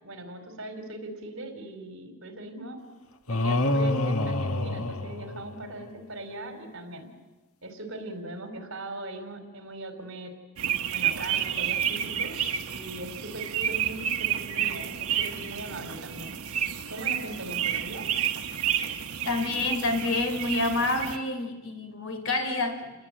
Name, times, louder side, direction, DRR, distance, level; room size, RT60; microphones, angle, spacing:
voice 1, 0.0-2.8 3.3-7.1 7.6-10.3 10.9-12.4 12.7-16.3 16.9-18.1, right 1 dB, 60° right, 7 dB, 4.3 m, -40 dB
sound 1, 3.3-5.8, left 2 dB, 85° left, 1.4 m, -27 dB
sound 2, 10.6-21.2, right 9 dB, 90° right, 1.2 m, -30 dB
voice 2, 19.3-22.9, left 2 dB, 60° left, 7 dB, 3.9 m, -28 dB
29.5 x 21.0 x 9.0 m, 1.2 s
head